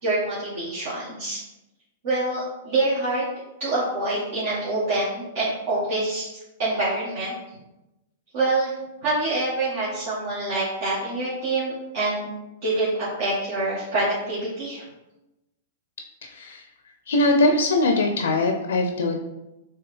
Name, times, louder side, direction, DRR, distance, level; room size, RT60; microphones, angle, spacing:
voice 1, 0.0-1.4 2.0-3.3 3.6-7.3 8.3-8.7 9.0-12.3 12.6-14.8, right 2 dB, 55° right, -9 dB, 1.6 m, -26 dB
voice 2, 16.2-16.6 17.1-19.2, left 2 dB, 80° left, 4 dB, 0.5 m, -21 dB
4.6 x 3.2 x 3.3 m, 0.97 s
hypercardioid pair, 115°, 0 cm